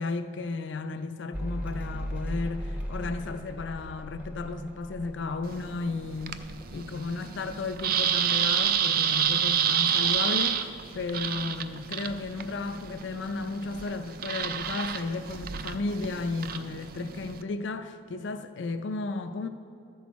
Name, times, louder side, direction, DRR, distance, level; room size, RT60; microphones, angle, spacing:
voice 1, 0.0-19.5, left 3 dB, 70° left, 0.4 m, -34 dB
Mechanical fan, 1.3-8.2 8.5-9.3, equal, 5° right, 0.6 m, -38 dB
sound 1, 5.4-17.4, right 8 dB, 45° right, 0.3 m, -29 dB
13.0 x 6.2 x 4.1 m
head